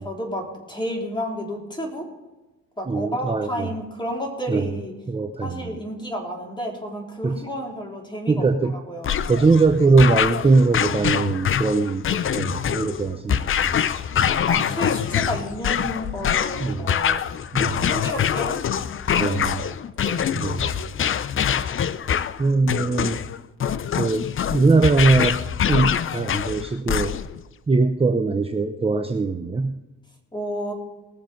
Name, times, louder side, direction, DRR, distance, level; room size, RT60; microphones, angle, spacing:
voice 1, 0.0-2.1 2.8-4.9 5.4-8.5 8.7-9.2 14.3-17.2 17.8-19.5 19.8-20.5 30.3-30.7, equal, 15° left, 0 dB, 3.7 m, -31 dB
voice 2, 2.9-3.7 4.5-4.8 5.1-5.8 7.2-7.4 8.3-8.8 9.3-13.8 16.6-16.9 17.5-17.9 19.2-19.7 20.3-20.7 22.4-23.2 24.0-25.4 25.7-27.2 27.7-29.8, right 3 dB, 20° right, 6 dB, 0.8 m, -21 dB
sound 1, 9.0-27.4, left 9 dB, 45° left, 0.6 m, -24 dB
20.0 x 7.3 x 5.2 m, 1.1 s
cardioid pair, 90°, 30 cm